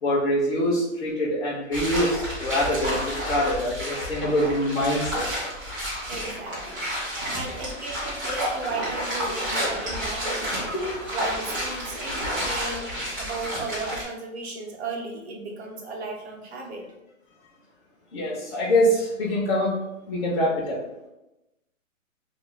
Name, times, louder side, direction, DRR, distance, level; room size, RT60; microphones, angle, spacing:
voice 1, 0.0-5.2 10.7-10.8 18.1-19.8 20.1-20.8, left 1 dB, 55° left, -6 dB, 0.7 m, -24 dB
sound 1, 1.7-14.0, equal, 15° right, 0.6 m, -30 dB
voice 2, 6.1-6.9 7.3-10.7 11.1-16.8, right 3 dB, 55° right, 0 dB, 0.8 m, -35 dB
2.5 x 2.3 x 3.1 m, 0.94 s
hypercardioid pair, 155°, 40 cm